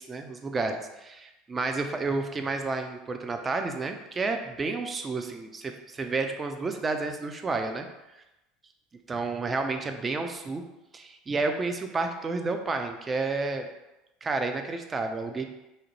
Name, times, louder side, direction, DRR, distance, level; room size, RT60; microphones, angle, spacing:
voice 1, 0.0-7.9 8.1-8.2 9.1-10.6 10.9-13.7 14.2-15.5, right 3 dB, 25° right, 5 dB, 0.3 m, -31 dB
2.7 x 2.1 x 2.9 m, 0.98 s
figure-of-eight pair, 70°, 0 cm